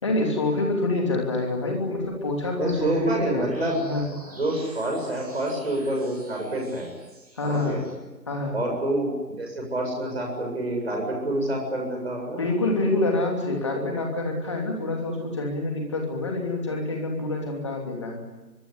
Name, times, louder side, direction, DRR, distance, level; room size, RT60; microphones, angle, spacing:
voice 1, 0.0-4.1 7.4-7.8 8.3-8.6 12.4-18.2, left 2 dB, 15° left, 1 dB, 2.9 m, -27 dB
sound 1, 1.9-7.9, right 2 dB, 25° right, 7.7 m, -47 dB
voice 2, 2.6-3.8 4.4-6.9 7.4-7.8 8.5-9.1 9.4-12.4, right 1 dB, 40° right, 1 dB, 7.5 m, -27 dB
24.0 x 23.5 x 10.0 m, 1.2 s
figure-of-eight pair, 165°, 50 cm